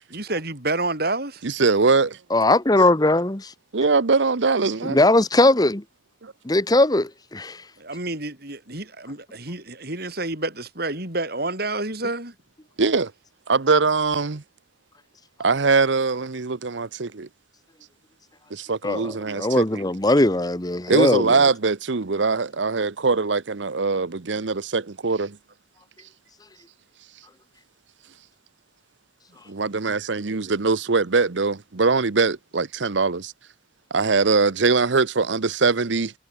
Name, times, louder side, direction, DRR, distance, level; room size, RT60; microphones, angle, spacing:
voice 1, 0.1-1.4 7.8-12.3 29.8-30.0, right 2 dB, 55° right, 7.7 m, -29 dB
voice 2, 1.4-2.2 3.7-5.0 6.2-6.3 12.8-13.1 13.5-14.4 15.4-17.3 18.5-19.8 20.9-25.4 29.5-33.3 33.9-36.1, right 4 dB, 80° right, 0.9 m, -22 dB
voice 3, 2.3-3.5 4.8-5.8 6.4-7.6 18.8-21.3, left 2 dB, 20° left, 1.3 m, -19 dB
head